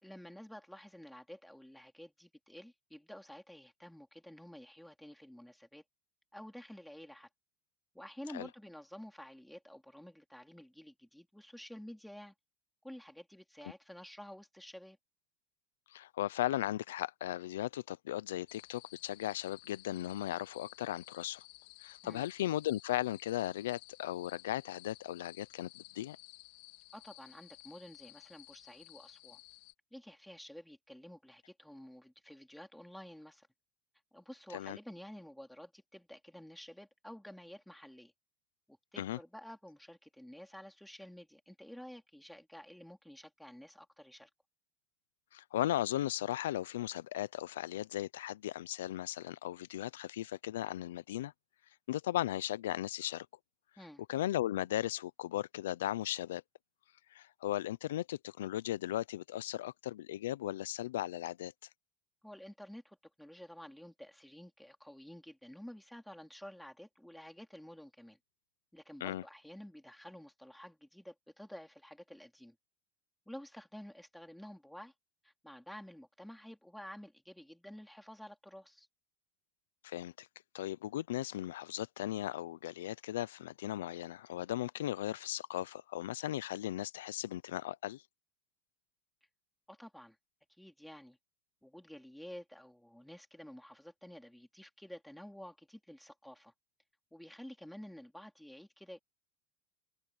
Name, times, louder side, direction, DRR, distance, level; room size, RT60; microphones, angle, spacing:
voice 1, 0.0-5.8 6.3-7.3 7.9-12.3 12.8-15.0 22.0-22.3 26.9-29.4 29.9-33.5 34.1-38.1 38.7-44.3 53.8-54.0 62.2-68.2 68.7-72.6 73.3-74.9 75.2-78.9 89.7-90.2 90.6-91.2 91.6-96.5 97.1-99.0, equal, ahead, 4.2 m, -51 dB
voice 2, 15.9-21.4 21.8-26.2 34.5-34.8 39.0-39.2 45.3-51.3 51.9-53.3 54.1-56.4 57.1-61.5 69.0-69.2 79.8-80.3 80.5-88.0, left 13 dB, 90° left, 0.5 m, -37 dB
sound 1, 18.5-29.7, left 23 dB, 70° left, 3.0 m, -56 dB
supercardioid pair, 110°, 0 cm